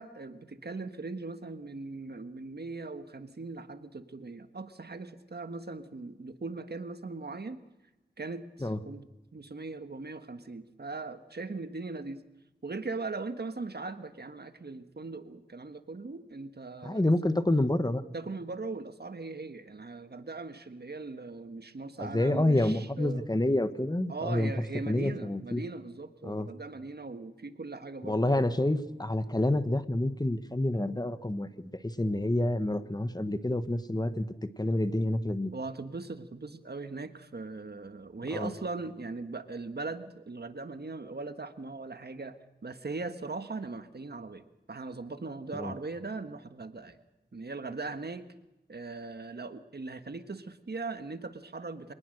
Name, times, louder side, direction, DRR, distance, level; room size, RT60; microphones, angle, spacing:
voice 1, 0.0-7.6 8.2-9.0 9.3-12.2 12.6-17.0 18.1-23.2 24.1-28.4 35.5-42.4 42.6-47.0 47.3-48.2 48.7-51.9, right 3 dB, 65° right, 9 dB, 1.4 m, -39 dB
voice 2, 16.8-18.0 22.0-24.5 24.9-25.6 26.2-26.5 28.0-34.2 34.6-35.5 38.3-38.5 45.6-45.7, left 1 dB, 20° left, 11 dB, 1.4 m, -28 dB
25.5 x 19.0 x 6.5 m, 0.98 s
wide cardioid pair, 70°, 18 cm